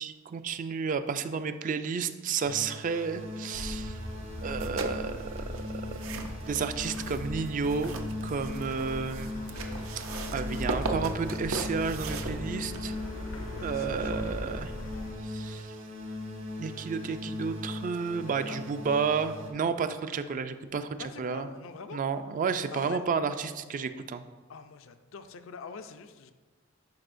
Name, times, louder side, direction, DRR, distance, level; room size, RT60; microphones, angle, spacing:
voice 1, 0.0-4.0 4.4-5.4 5.9-6.0 6.5-7.9 8.2-9.3 10.0-10.1 10.3-13.0 13.6-14.7 15.2-15.8 16.6-21.5 21.9-24.2, right 5 dB, 40° right, 10 dB, 0.3 m, -31 dB
sound 1, 2.5-19.5, left 1 dB, 65° right, 1.4 m, -39 dB
sound 2, 3.5-15.1, left 1 dB, 85° left, 0.8 m, -40 dB
sound 3, 4.4-13.1, right 3 dB, 85° right, 0.6 m, -39 dB
voice 2, 9.5-9.9 13.4-14.4 18.2-18.6 21.0-22.0 22.7-23.0 24.5-26.3, left 5 dB, 70° left, 9 dB, 0.5 m, -45 dB
10.5 x 4.9 x 2.5 m, 1.4 s
head